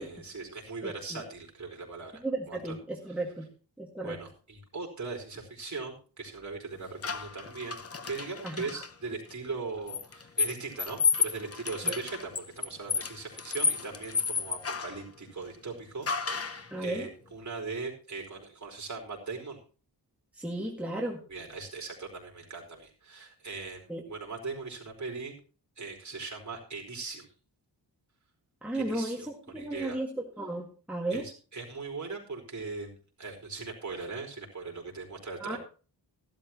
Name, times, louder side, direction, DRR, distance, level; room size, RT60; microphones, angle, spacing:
voice 1, 0.0-2.7 4.0-19.6 21.3-25.3 25.8-27.3 28.7-30.0 31.1-32.9 33.2-35.6, right 4 dB, 40° right, 1 dB, 4.6 m, -40 dB
voice 2, 0.8-1.2 2.2-3.5 3.8-4.2 8.4-8.8 11.8-12.0 16.7-17.1 20.3-21.2 23.9-24.0 28.6-30.1 30.4-31.2 35.4-35.6, right 2 dB, 5° right, -2 dB, 2.0 m, -34 dB
sound 1, 7.0-8.9 9.9-15.0 16.1-16.7, left 5 dB, 35° left, 0.8 m, -31 dB
16.0 x 12.5 x 3.0 m, 0.37 s
wide cardioid pair, 155°, 43 cm